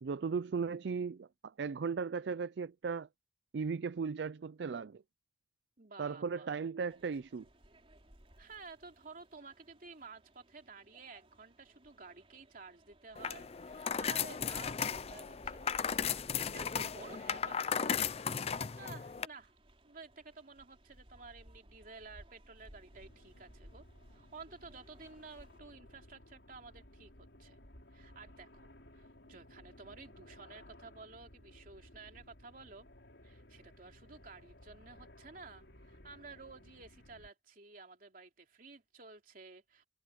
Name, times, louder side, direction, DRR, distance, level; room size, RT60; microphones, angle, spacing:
voice 1, 0.0-3.1 3.5-5.0 6.0-7.4, right 5 dB, 70° right, 0.4 m, -37 dB
voice 2, 5.8-6.6 8.4-16.0 16.5-17.8 18.8-19.5 19.8-23.8 24.1-27.6 27.9-32.9 33.2-39.8, right 4 dB, 50° right, 3.0 m, -53 dB
sound 1, 6.9-25.6, equal, 30° right, 4.4 m, -60 dB
sound 2, 13.1-19.3, left 7 dB, 35° left, 0.5 m, -36 dB
sound 3, 22.9-37.3, left 1 dB, 75° left, 4.6 m, -58 dB
head